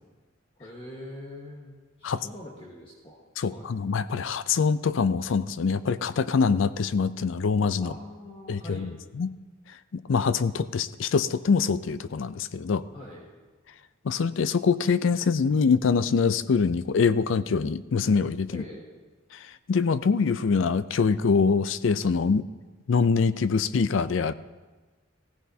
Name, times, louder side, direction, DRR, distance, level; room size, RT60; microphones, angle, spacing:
voice 1, 0.6-1.7 2.0-3.2 3.5-3.7 7.8-8.9 12.8-13.3 18.5-18.8, left 1 dB, 30° left, -3 dB, 1.3 m, -43 dB
voice 2, 3.4-7.9 8.5-8.9 9.2-9.3 9.9-12.8 14.0-18.6 19.7-22.5 22.9-24.3, left 5 dB, 70° left, 15 dB, 0.4 m, -24 dB
16.0 x 15.5 x 2.8 m, 1.3 s
head